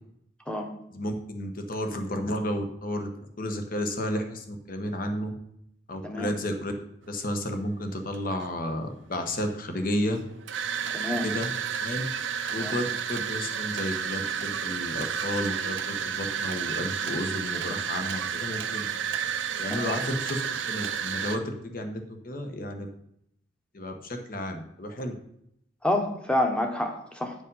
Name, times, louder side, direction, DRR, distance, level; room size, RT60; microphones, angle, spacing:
voice 1, 0.9-3.1 3.4-5.3 5.9-6.7 7.1-10.2 11.2-11.5 11.8-12.1 12.5-18.9 19.6-20.4 20.7-22.9 23.7-25.1, left 1 dB, 45° left, 6 dB, 1.1 m, -32 dB
voice 2, 6.0-6.3 10.9-11.3 12.5-12.7 19.7-20.0 25.8-27.3, left 1 dB, 5° left, 4 dB, 1.1 m, -28 dB
sound 1, 7.1-7.4 8.1-8.7 9.4-21.4, right 7 dB, 75° right, 0.7 m, -31 dB
9.6 x 5.2 x 5.5 m, 0.74 s
head